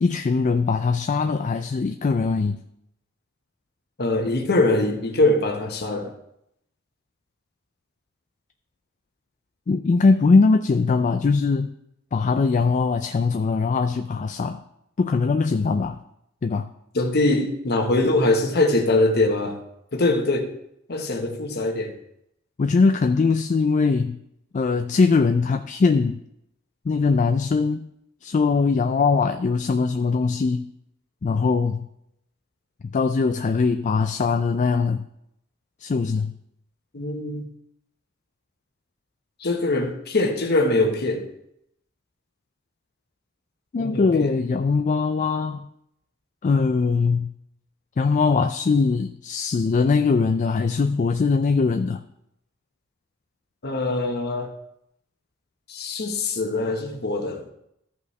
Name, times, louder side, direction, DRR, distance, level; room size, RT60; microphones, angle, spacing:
voice 1, 0.0-2.6 9.7-11.7 12.1-14.6 15.0-16.0 16.4-16.7 22.6-24.2 24.5-26.2 26.9-27.9 28.2-30.7 31.2-31.9 32.9-35.0 35.8-36.3 43.7-45.7 46.4-47.3 48.0-52.0, left 4 dB, 35° left, 8 dB, 0.3 m, -21 dB
voice 2, 4.0-6.1 16.9-19.6 19.9-20.6 20.9-22.0 36.9-37.5 39.4-41.3 43.8-44.3 53.6-54.5 55.7-57.4, left 2 dB, 55° left, 4 dB, 1.1 m, -23 dB
14.0 x 5.4 x 3.2 m, 0.78 s
head